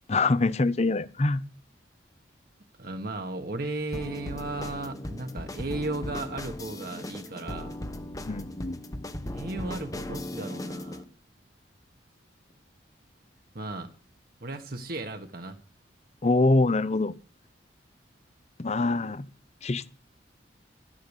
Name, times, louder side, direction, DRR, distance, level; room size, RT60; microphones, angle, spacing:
voice 1, 0.1-1.4 8.3-8.8 16.2-17.1 18.6-19.3 19.6-19.9, left 3 dB, 35° left, 0.6 m, -24 dB
voice 2, 2.8-7.8 9.3-11.1 13.5-13.9 14.4-15.6, right 2 dB, 50° right, 1.3 m, -35 dB
sound 1, 3.9-11.0, left 1 dB, 20° left, 0.9 m, -37 dB
13.0 x 10.5 x 8.1 m
head